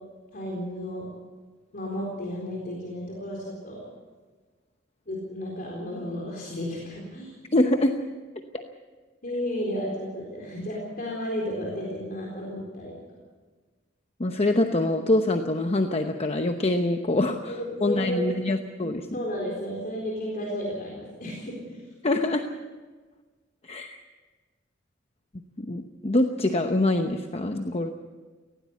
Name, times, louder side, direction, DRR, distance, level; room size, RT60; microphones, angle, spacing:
voice 1, 0.3-1.1 1.7-3.8 5.1-7.4 9.2-12.9 17.5-18.3 19.1-21.8, equal, 45° left, -2 dB, 4.1 m, -33 dB
voice 2, 7.5-7.9 14.2-19.2 22.0-22.4 23.6-24.0 25.6-27.9, left 2 dB, 30° left, 5 dB, 0.9 m, -25 dB
18.5 x 17.0 x 8.3 m, 1.4 s
head